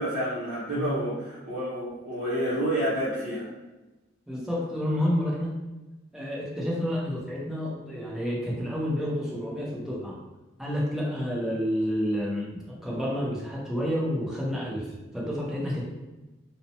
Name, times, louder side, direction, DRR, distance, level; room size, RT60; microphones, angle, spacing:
voice 1, 0.0-3.5, right 1 dB, 40° right, -12 dB, 0.8 m, -29 dB
voice 2, 0.7-1.0 4.3-5.6 6.1-10.2 10.6-14.9 15.1-15.8, equal, 5° right, -5 dB, 0.6 m, -29 dB
2.7 x 2.0 x 2.7 m, 1.1 s
head